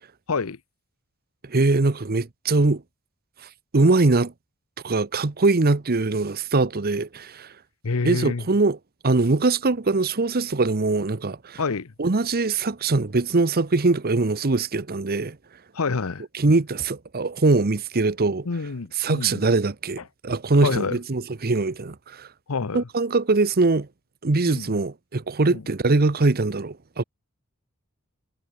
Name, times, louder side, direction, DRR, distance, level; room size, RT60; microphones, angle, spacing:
voice 1, 1.4-2.8 3.7-4.3 4.8-7.5 8.0-8.8 9.0-11.6 12.0-15.4 16.3-18.5 19.0-22.3 22.7-23.9 24.2-27.0, right 3 dB, 45° right, 0.9 m, -22 dB
voice 2, 7.8-8.4 11.6-11.9 15.7-16.2 18.4-19.4 20.6-21.0 22.5-22.8 24.5-24.8 25.5-25.6, left 4 dB, 75° left, 0.8 m, -27 dB
head